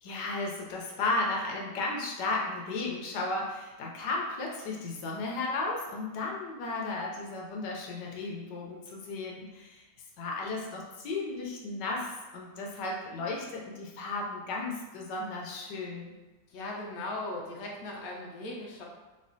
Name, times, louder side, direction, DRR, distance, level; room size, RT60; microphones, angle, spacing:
voice 1, 0.0-9.8 10.2-16.1, left 3 dB, 85° left, -1 dB, 1.3 m, -34 dB
voice 2, 16.5-18.8, left 2 dB, 65° left, -2 dB, 1.1 m, -38 dB
3.6 x 3.1 x 2.7 m, 1.2 s
omnidirectional pair, 1.8 m